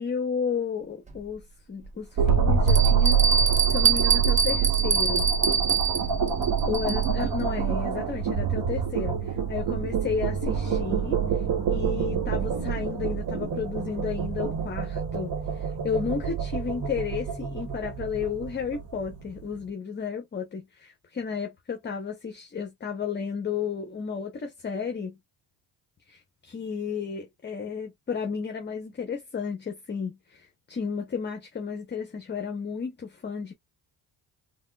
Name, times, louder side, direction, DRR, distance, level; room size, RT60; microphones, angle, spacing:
voice 1, 0.0-1.4 1.7-5.2 6.7-11.4 11.7-25.2 26.1-33.5, left 6 dB, 25° left, 0.8 m, -33 dB
Bell, 1.1-1.2 1.8-1.9 2.7-7.2, right 5 dB, 15° right, 0.8 m, -25 dB
sound 1, 2.2-19.4, right 7 dB, 55° right, 1.1 m, -26 dB
3.5 x 2.3 x 2.2 m
cardioid pair, 95°, 41 cm